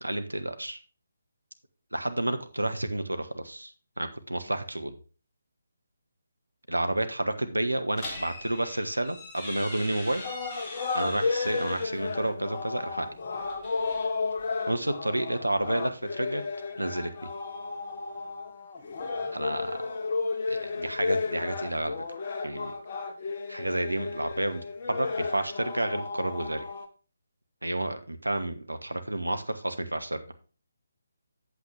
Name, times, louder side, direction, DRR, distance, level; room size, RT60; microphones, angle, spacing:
voice 1, 0.0-0.8 1.9-5.0 6.7-10.2 10.9-13.1 14.7-16.4 16.8-17.1 19.3-19.9 20.5-22.0 22.4-22.7 23.5-26.7 27.6-30.2, right 1 dB, 85° right, 8 dB, 1.1 m, -30 dB
sound 1, 8.0-12.0 13.3-14.5, left 2 dB, 20° left, 2.2 m, -42 dB
sound 2, 10.2-26.9, left 4 dB, 40° left, 1.1 m, -33 dB
8.4 x 7.8 x 3.3 m, 0.36 s
figure-of-eight pair, 145°, 0 cm